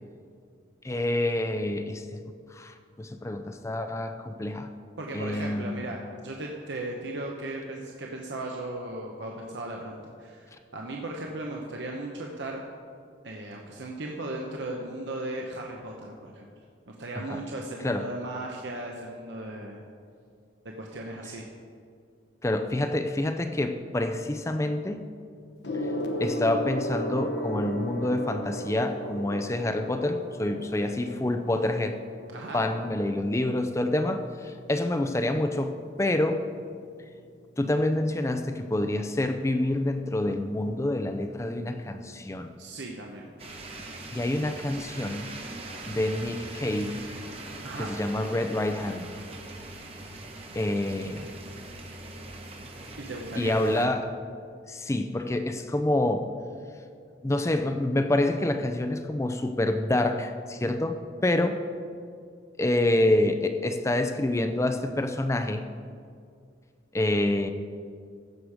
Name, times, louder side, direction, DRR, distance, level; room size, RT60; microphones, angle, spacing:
voice 1, 0.8-2.2 2.5-4.7 5.1-5.9 17.2-17.4 17.8-18.1 22.4-25.1 26.2-32.0 32.5-36.4 37.6-42.5 44.1-45.3 45.9-47.1 47.8-49.1 50.5-51.3 53.4-54.1 54.7-56.3 57.2-61.6 62.6-65.7 66.9-67.5, left 1 dB, 15° left, 8 dB, 0.4 m, -27 dB
voice 2, 5.0-12.6 13.2-16.5 16.9-19.8 20.8-21.5 32.3-32.6 42.6-43.3 47.6-47.9 53.0-53.9, right 2 dB, 75° right, 0 dB, 1.0 m, -37 dB
Gong, 25.6-35.4 36.4-36.6, equal, 70° left, 1.1 m, -36 dB
sound 1, 43.4-53.9, right 2 dB, 30° right, 1.1 m, -42 dB
15.5 x 6.6 x 4.9 m, 2.2 s
head